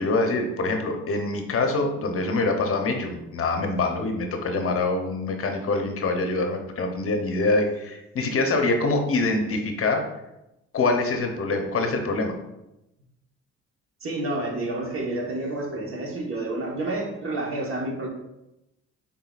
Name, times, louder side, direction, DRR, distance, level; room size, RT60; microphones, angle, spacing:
voice 1, 0.0-10.0 10.7-12.3, left 3 dB, 45° left, 4 dB, 0.7 m, -25 dB
voice 2, 14.0-18.1, right 2 dB, 45° right, 0 dB, 1.2 m, -29 dB
5.7 x 3.7 x 2.4 m, 0.91 s
cardioid pair, 90°, 30 cm